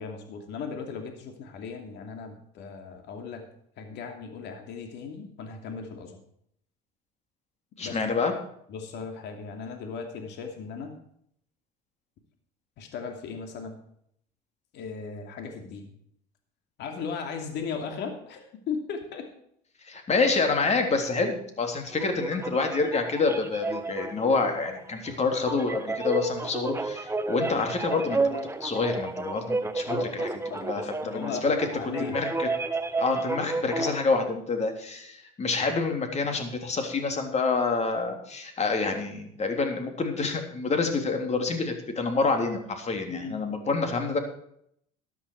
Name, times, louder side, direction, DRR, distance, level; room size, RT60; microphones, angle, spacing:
voice 1, 0.0-3.5 3.8-6.2 7.8-8.0 8.7-10.9 12.8-13.8 14.7-15.9 16.8-19.3 29.9-32.2 43.1-43.4, left 5 dB, 60° left, 4 dB, 2.8 m, -37 dB
voice 2, 7.8-8.3 19.9-30.2 30.6-31.6 32.1-32.5 33.0-44.2, left 4 dB, 35° left, 4 dB, 3.5 m, -27 dB
sound 1, 21.9-34.0, right 3 dB, 15° right, 1.2 m, -32 dB
13.5 x 10.5 x 4.8 m, 0.68 s
hypercardioid pair, 75°, 20 cm